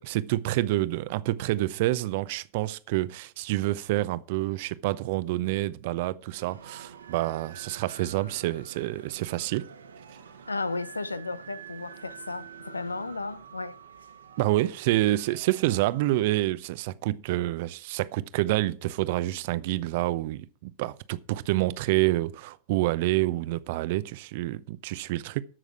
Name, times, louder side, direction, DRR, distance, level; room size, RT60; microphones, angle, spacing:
voice 1, 0.0-9.7 14.4-25.4, right 17 dB, 50° right, 0.6 m, -28 dB
sound 1, 6.4-16.2, right 6 dB, 70° right, 1.2 m, -47 dB
voice 2, 10.5-13.8, left 3 dB, 80° left, 0.6 m, -34 dB
13.5 x 6.3 x 4.9 m
figure-of-eight pair, 90°, 0 cm